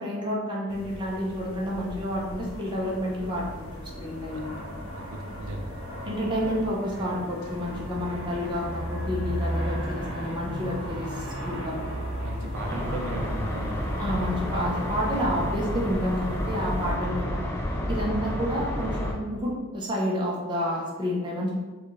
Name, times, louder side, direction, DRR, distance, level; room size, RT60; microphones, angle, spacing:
voice 1, 0.0-4.5 6.0-11.8 14.0-17.5 17.9-21.5, equal, 20° right, -4 dB, 0.9 m, -30 dB
sound 1, 0.7-17.0, left 1 dB, 85° left, 0.6 m, -43 dB
Aircraft, 1.5-18.7, equal, 60° right, 1.4 m, -37 dB
voice 2, 4.9-6.3 12.2-14.0 18.1-18.3, right 2 dB, 80° right, 2 dB, 0.6 m, -37 dB
sound 2, 12.5-19.1, left 1 dB, 10° left, 0.5 m, -30 dB
6.1 x 2.5 x 3.3 m, 1.2 s
head